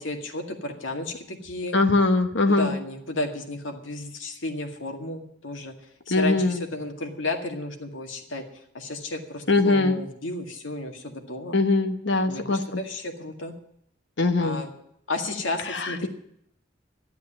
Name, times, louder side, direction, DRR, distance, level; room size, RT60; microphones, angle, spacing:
voice 1, 0.0-1.8 2.6-5.7 6.1-8.4 8.7-11.6 12.3-13.5 14.4-14.7 15.1-16.1, left 2 dB, 90° left, 4 dB, 2.1 m, -33 dB
voice 2, 1.7-2.7 6.1-6.6 9.5-10.0 11.5-12.8 14.2-14.6 15.6-16.1, left 3 dB, 70° left, 8 dB, 1.2 m, -22 dB
12.5 x 8.4 x 8.8 m, 0.74 s
head